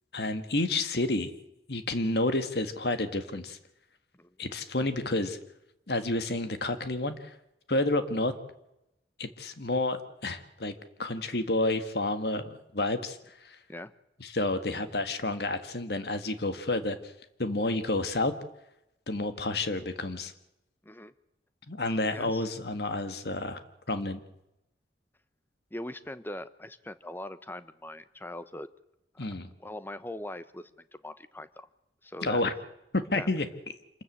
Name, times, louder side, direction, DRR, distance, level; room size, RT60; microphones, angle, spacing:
voice 1, 0.1-1.3 1.7-3.6 4.4-5.4 5.9-7.3 7.7-8.3 9.2-10.7 11.0-13.2 13.4-13.6 14.2-17.1 17.4-18.3 19.1-20.3 21.7-23.6 23.9-24.2 29.2-29.5 32.2-32.5 32.9-33.5, left 2 dB, 65° left, 10 dB, 1.7 m, -30 dB
voice 2, 20.8-21.1 22.1-22.4 25.7-28.7 29.1-29.2 29.6-30.7 31.0-31.7 32.0-32.4 33.2-33.3, left 1 dB, 10° left, 13 dB, 0.8 m, -41 dB
26.5 x 14.0 x 8.6 m, 0.87 s
head